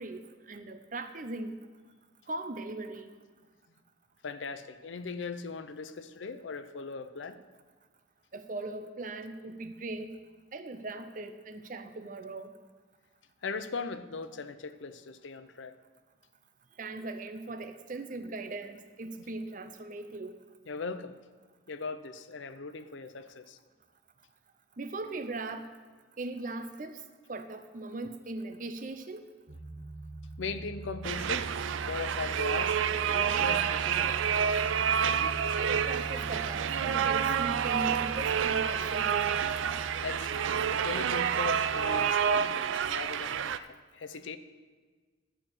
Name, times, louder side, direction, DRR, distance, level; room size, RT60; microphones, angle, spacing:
voice 1, 0.0-1.6 2.3-3.1 8.3-10.2 10.5-12.5 16.8-20.4 24.8-25.7 26.2-27.0 27.3-29.3 35.6-39.3, right 2 dB, 45° right, 9 dB, 0.6 m, -39 dB
voice 2, 4.2-7.4 13.4-15.7 20.7-21.1 21.7-23.6 30.4-31.5 31.9-34.8 40.0-43.7 43.9-44.4, left 4 dB, 80° left, 12 dB, 0.6 m, -39 dB
sound 1, 29.5-42.0, right 2 dB, 60° right, 1.4 m, -42 dB
sound 2, 31.0-43.6, right 8 dB, 85° right, 0.4 m, -29 dB
12.5 x 4.5 x 7.8 m, 1.4 s
head